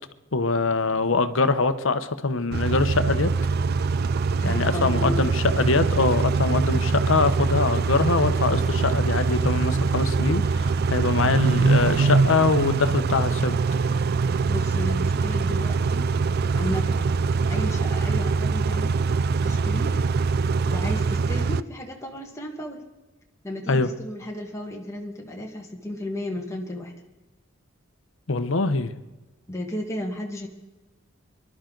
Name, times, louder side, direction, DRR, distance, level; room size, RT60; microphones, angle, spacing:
voice 1, 0.3-3.3 4.4-13.6 23.7-23.9 28.3-28.9, left 3 dB, 75° left, 11 dB, 0.9 m, -23 dB
Car / Idling / Accelerating revving vroom, 2.5-21.6, right 4 dB, 50° right, 0.4 m, -23 dB
voice 2, 4.4-5.2 14.5-16.1 16.6-17.0 17.5-19.0 19.4-19.9 20.7-22.8 23.4-26.9 29.5-30.5, left 1 dB, 15° left, -1 dB, 1.7 m, -33 dB
25.5 x 12.0 x 3.9 m, 1.1 s
head